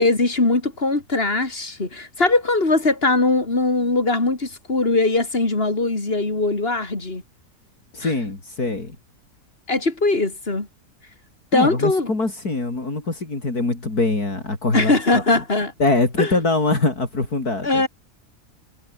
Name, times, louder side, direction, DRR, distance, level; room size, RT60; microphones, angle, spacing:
voice 1, 0.0-7.2 8.0-8.1 9.7-10.7 11.5-12.1 14.7-15.7 16.2-16.4 17.6-17.9, left 2 dB, 35° left, 3.8 m, -20 dB
voice 2, 7.9-9.0 11.5-15.2 15.8-17.8, left 3 dB, 70° left, 5.2 m, -23 dB
omnidirectional pair, 1.7 m